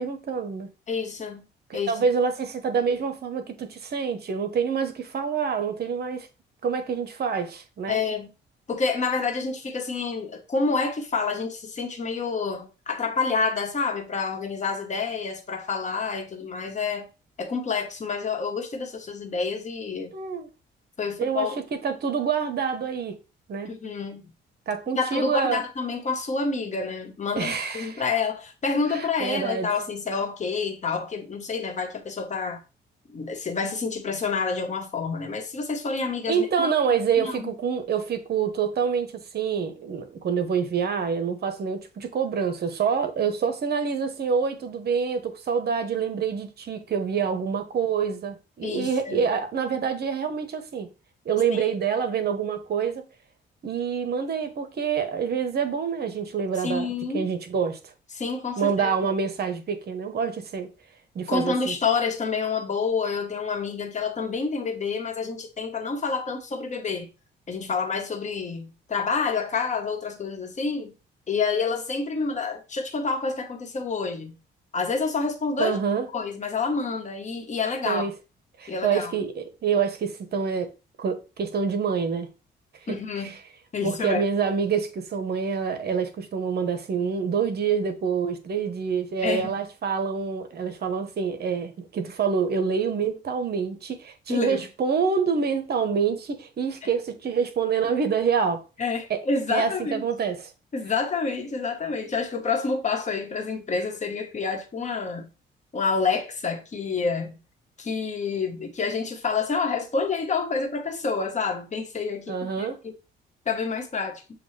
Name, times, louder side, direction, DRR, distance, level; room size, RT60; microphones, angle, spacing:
voice 1, 0.0-0.7 1.7-6.3 6.6-8.0 20.1-20.5 21.2-23.2 23.5-23.7 24.7-25.6 27.4-28.0 28.9-29.7 36.3-50.9 51.2-53.0 53.6-56.9 57.1-57.9 58.6-60.7 61.1-61.8 75.6-76.1 77.8-78.1 78.6-80.7 81.0-82.3 82.9-83.4 83.8-98.6 99.1-99.2 99.5-100.5 112.3-112.8, right 6 dB, 55° right, 0.9 m, -26 dB
voice 2, 0.9-1.4 1.7-1.9 7.9-8.3 8.7-17.1 17.4-20.1 21.0-21.6 23.6-24.2 25.0-32.6 33.1-36.7 37.2-37.5 48.6-49.2 51.5-51.6 56.6-57.2 58.1-58.9 61.3-67.1 67.5-70.9 71.3-74.3 74.7-75.8 76.1-78.1 78.7-79.1 82.9-83.3 83.7-84.3 89.2-89.6 94.3-94.7 98.8-100.0 100.7-105.3 105.7-107.4 107.8-112.9 113.5-114.2, left 4 dB, 35° left, 1.1 m, -28 dB
6.9 x 2.3 x 3.2 m
cardioid pair, 90°, 20 cm